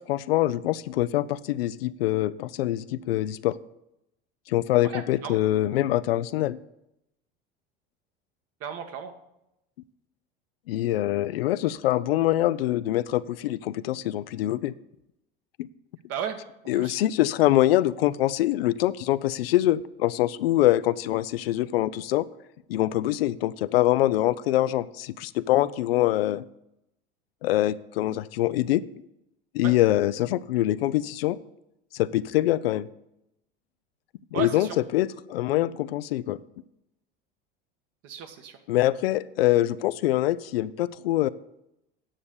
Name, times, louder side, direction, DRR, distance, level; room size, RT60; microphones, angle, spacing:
voice 1, 0.1-3.5 4.5-6.6 10.7-14.7 15.6-15.7 16.7-22.3 22.7-26.5 27.4-28.8 29.5-31.4 31.9-32.9 34.3-36.4 38.7-41.3, left 14 dB, 85° left, 16 dB, 0.5 m, -24 dB
voice 2, 4.9-5.4 8.6-9.1 16.1-16.4 16.8-17.0 29.6-29.7 34.3-34.8 38.0-38.6, right 8 dB, 55° right, 5 dB, 1.7 m, -34 dB
10.0 x 6.5 x 7.0 m, 0.85 s
hypercardioid pair, 85°, 29 cm